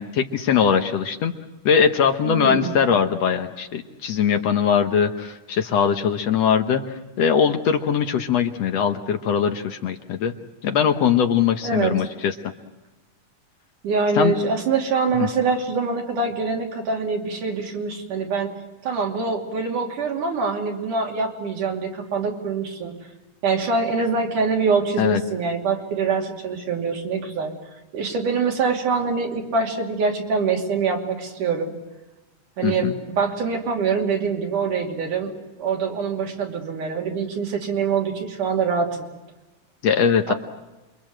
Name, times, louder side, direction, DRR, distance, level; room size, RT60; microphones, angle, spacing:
voice 1, 0.0-1.3 1.7-10.3 10.6-12.3 14.2-14.4 15.1-15.3 25.0-25.2 32.6-32.9 39.8-40.3, left 7 dB, 65° left, 7 dB, 2.0 m, -21 dB
voice 2, 2.2-2.7 11.6-12.1 13.8-18.5 18.8-23.0 23.4-27.5 27.9-31.7 32.6-32.9 33.2-35.3 35.6-38.9 40.3-40.4, right 5 dB, 80° right, 1 dB, 4.3 m, -24 dB
28.0 x 23.5 x 7.6 m, 1.1 s
omnidirectional pair, 3.6 m